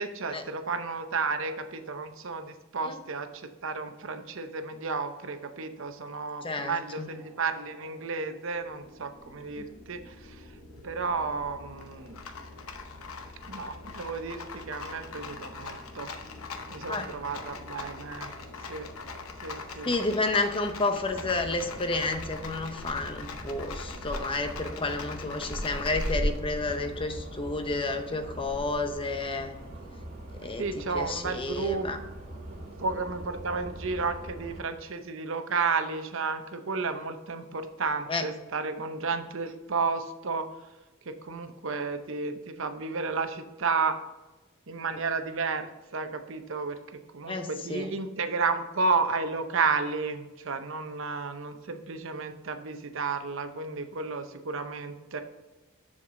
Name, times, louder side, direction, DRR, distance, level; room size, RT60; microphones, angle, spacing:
voice 1, 0.0-3.3 3.6-10.1 10.8-12.2 13.4-16.1 16.7-18.3 18.7-18.9 19.4-19.9 30.6-31.9 32.8-40.5 41.1-44.0 44.7-46.8 47.1-55.2, right 4 dB, 65° right, 8 dB, 0.7 m, -32 dB
voice 2, 6.4-7.1 9.5-9.6 16.9-17.1 19.8-29.5 30.4-32.0 38.1-38.3 44.8-45.0 47.3-47.9, left 2 dB, 25° left, 6 dB, 0.7 m, -31 dB
sound 1, 7.0-21.9, equal, 20° right, 2.5 m, -52 dB
Rattle, 8.5-27.1, left 4 dB, 85° left, 0.8 m, -43 dB
sound 2, 21.0-34.6, equal, 45° right, 2.3 m, -39 dB
7.1 x 6.6 x 3.7 m, 1.1 s
head